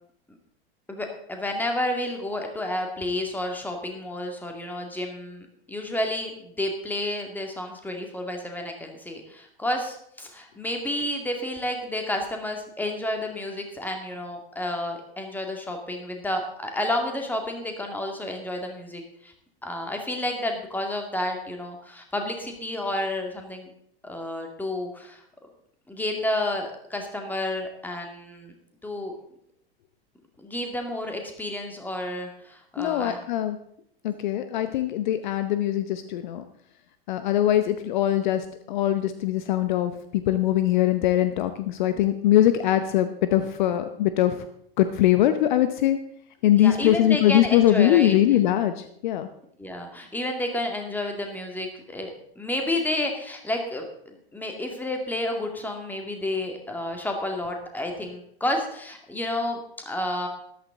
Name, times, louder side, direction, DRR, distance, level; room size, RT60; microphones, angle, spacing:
voice 1, 0.9-19.3 19.6-23.7 24.0-25.2 25.9-28.5 28.8-29.2 30.4-33.2 46.6-48.1 49.6-59.6 59.9-60.3, left 1 dB, 5° left, 3 dB, 2.2 m, -30 dB
voice 2, 32.8-33.6 34.0-36.4 37.1-44.4 44.8-46.0 46.4-49.3, left 12 dB, 50° left, 10 dB, 0.8 m, -22 dB
13.5 x 12.0 x 3.7 m, 0.70 s
figure-of-eight pair, 90°, 30 cm